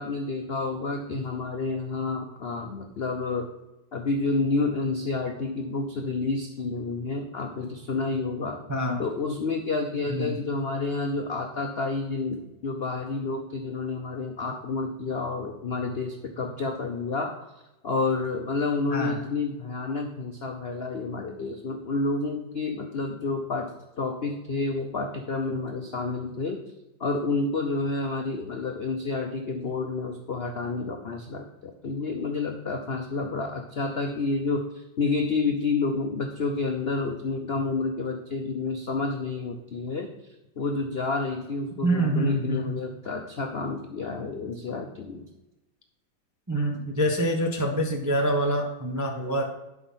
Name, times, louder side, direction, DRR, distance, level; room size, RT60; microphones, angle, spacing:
voice 1, 0.0-3.5 3.9-8.6 9.0-17.3 17.8-23.7 24.0-26.6 27.0-40.1 40.6-45.3, left 3 dB, 65° left, 3 dB, 0.6 m, -29 dB
voice 2, 41.8-42.8 46.5-49.5, right 1 dB, 20° right, 1 dB, 0.5 m, -26 dB
11.5 x 4.9 x 5.6 m, 0.97 s
omnidirectional pair, 2.1 m